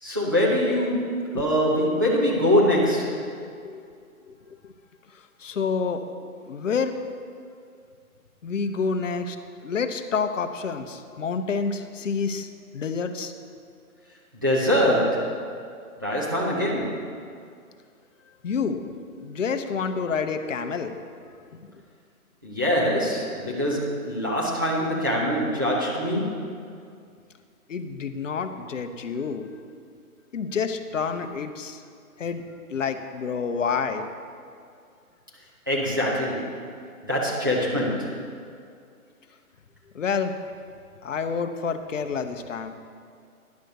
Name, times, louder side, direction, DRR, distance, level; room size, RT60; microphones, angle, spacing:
voice 1, 0.0-3.3 14.4-15.4 16.0-17.1 22.4-26.5 35.7-36.6 37.0-38.2, equal, 15° right, -6 dB, 0.6 m, -24 dB
voice 2, 5.4-6.0 6.4-7.0 8.4-9.4 9.6-12.5 12.7-13.3 18.4-18.9 19.2-20.9 27.7-29.5 30.3-31.8 32.2-32.4 32.7-34.1 39.9-40.3 41.0-42.7, left 5 dB, 55° left, 7 dB, 0.8 m, -28 dB
10.5 x 6.3 x 5.2 m, 2.3 s
hypercardioid pair, 170°, 45 cm